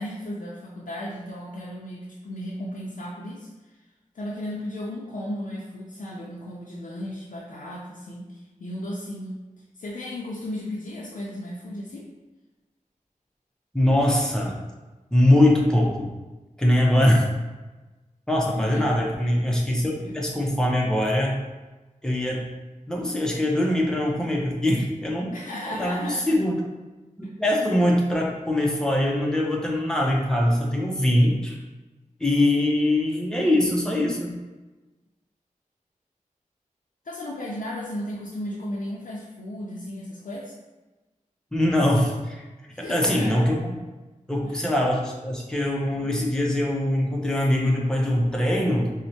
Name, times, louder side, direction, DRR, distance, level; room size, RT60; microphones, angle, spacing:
voice 1, 0.0-3.5 4.1-8.3 8.6-9.4 9.8-12.1 18.6-18.9 25.3-26.3 27.2-27.3 37.0-40.5 42.7-43.5, left 1 dB, 70° left, -5 dB, 0.5 m, -35 dB
voice 2, 13.7-14.6 15.1-16.1 16.6-17.3 18.3-21.3 22.0-22.5 22.9-25.3 25.7-26.6 27.4-31.6 32.2-34.4 41.5-42.4 42.8-43.7 44.3-48.9, left 1 dB, 5° left, -2 dB, 0.6 m, -22 dB
4.3 x 2.1 x 2.7 m, 1.1 s
wide cardioid pair, 90°, 14 cm